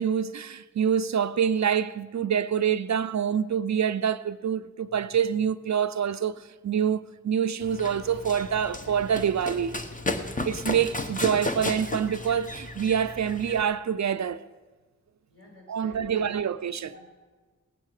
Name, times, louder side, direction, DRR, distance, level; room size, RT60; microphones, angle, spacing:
voice 1, 0.0-9.8 10.4-14.4 15.7-16.9, right 8 dB, 60° right, 0.5 m, -26 dB
Run, 7.6-13.6, left 2 dB, 25° left, 1.0 m, -34 dB
voice 2, 15.3-16.4 16.8-17.0, left 2 dB, 45° left, 5.8 m, -51 dB
18.5 x 8.4 x 6.4 m
wide cardioid pair, 70°, 31 cm